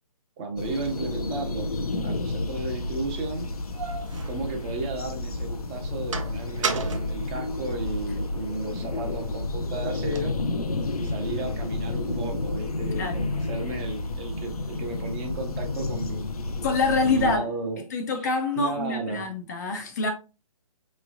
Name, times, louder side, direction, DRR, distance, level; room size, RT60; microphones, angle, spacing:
voice 1, 0.4-3.5 4.2-10.4 10.9-16.3 17.0-17.8 18.5-19.3, right 3 dB, 20° right, 0.6 m, -33 dB
sound 1, 0.6-17.4, left 2 dB, 85° left, 0.6 m, -31 dB
sound 2, 3.4-5.2 5.6-8.2 8.6-10.4, right 5 dB, 60° right, 0.7 m, -35 dB
voice 2, 16.6-17.5 17.9-20.1, left 4 dB, 30° left, 0.5 m, -26 dB
4.6 x 3.1 x 2.4 m
figure-of-eight pair, 145°, 18 cm